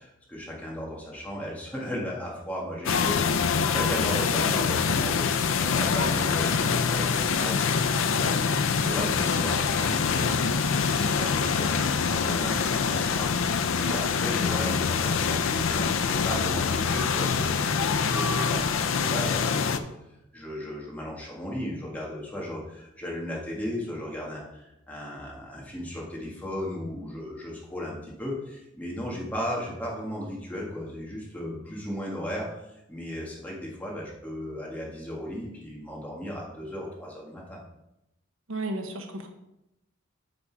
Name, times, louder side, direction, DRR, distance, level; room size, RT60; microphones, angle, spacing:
voice 1, 0.0-10.3 10.7-19.8 20.3-37.6, equal, 10° left, -4 dB, 1.7 m, -36 dB
sound 1, 2.9-19.8, left 5 dB, 80° left, 0.5 m, -25 dB
voice 2, 38.5-39.3, right 2 dB, 90° right, 4 dB, 1.2 m, -33 dB
7.8 x 5.3 x 4.6 m, 0.88 s
head